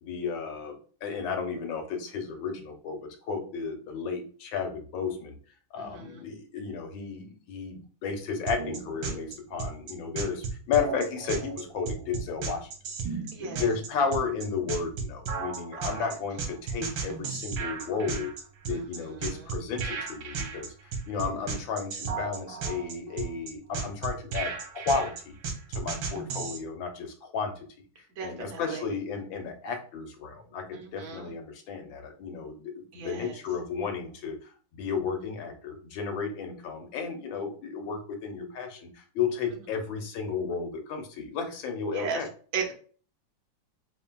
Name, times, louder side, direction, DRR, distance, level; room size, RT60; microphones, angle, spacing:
voice 1, 0.0-3.0 3.3-5.4 5.7-12.7 13.4-18.3 18.6-25.4 25.7-27.5 28.2-34.5 34.8-42.3, left 5 dB, 85° left, 4 dB, 1.5 m, -33 dB
voice 2, 5.8-6.2 13.3-13.6 15.8-16.1 18.7-18.8 19.2-19.5 28.2-28.8 30.7-31.3 32.9-33.4 41.9-42.2 42.5-42.7, right 5 dB, 55° right, 1 dB, 1.2 m, -36 dB
sound 1, 8.5-26.6, right 5 dB, 75° right, 1.5 m, -34 dB
4.4 x 3.2 x 2.2 m, 0.42 s
omnidirectional pair, 2.1 m